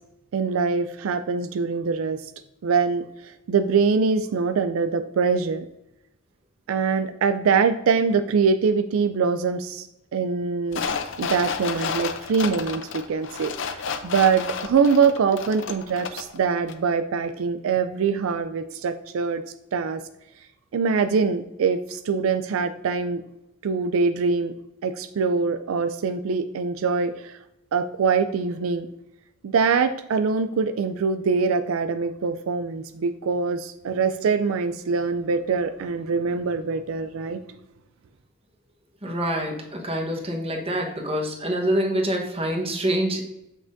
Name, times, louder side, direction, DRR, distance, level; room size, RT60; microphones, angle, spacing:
voice 1, 0.3-2.3 2.6-5.7 6.7-9.9 10.1-10.8 11.2-19.4 19.7-20.0 20.7-23.2 23.6-24.5 24.8-27.4 27.7-28.9 29.4-37.4, right 5 dB, 85° right, 10 dB, 0.4 m, -23 dB
Ice Cubes, 10.7-16.4 16.7-16.8, left 6 dB, 65° left, 0.6 m, -31 dB
voice 2, 39.0-43.3, right 1 dB, 30° right, 1 dB, 1.2 m, -26 dB
7.2 x 5.9 x 2.6 m, 0.91 s
head